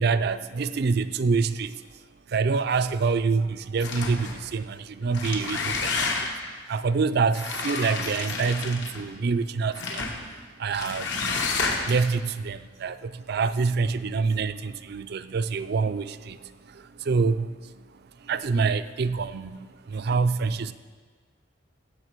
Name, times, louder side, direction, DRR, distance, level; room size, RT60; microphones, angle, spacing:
voice 1, 0.0-1.8 2.3-6.3 6.7-10.1 10.6-11.4 11.8-17.8 18.2-20.7, right 4 dB, 60° right, 12 dB, 0.4 m, -26 dB
sound 1, 3.8-4.4 5.0-6.5 7.3-9.1 9.7-10.2 10.7-12.1, left 4 dB, 75° left, 1.4 m, -30 dB
16.5 x 7.2 x 4.6 m, 1.5 s
head